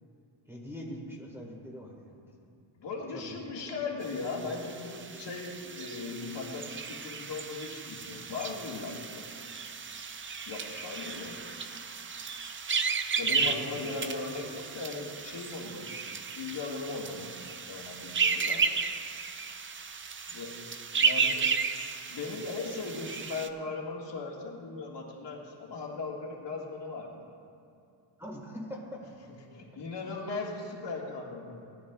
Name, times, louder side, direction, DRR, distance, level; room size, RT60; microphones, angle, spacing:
voice 1, 0.5-2.2 3.1-3.7 13.7-14.1 28.2-29.0, equal, 5° right, -2 dB, 1.7 m, -43 dB
voice 2, 2.8-9.3 10.5-11.4 13.2-18.6 20.3-20.6 21.0-21.4 21.8-27.2 29.5-31.7, left 3 dB, 65° left, -2 dB, 1.9 m, -38 dB
sound 1, 4.0-23.5, right 5 dB, 30° right, 0.4 m, -34 dB
18.5 x 11.5 x 2.4 m, 2.6 s
wide cardioid pair, 150°, 46 cm